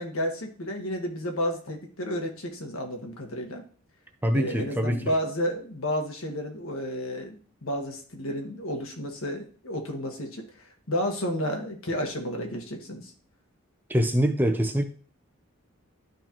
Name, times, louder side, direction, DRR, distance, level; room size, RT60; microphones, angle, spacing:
voice 1, 0.0-3.6 4.3-10.5 10.9-13.1, equal, 75° left, 1.6 m, -31 dB
voice 2, 4.2-5.0 13.9-14.8, equal, 10° right, 0.7 m, -24 dB
12.0 x 4.4 x 3.0 m
head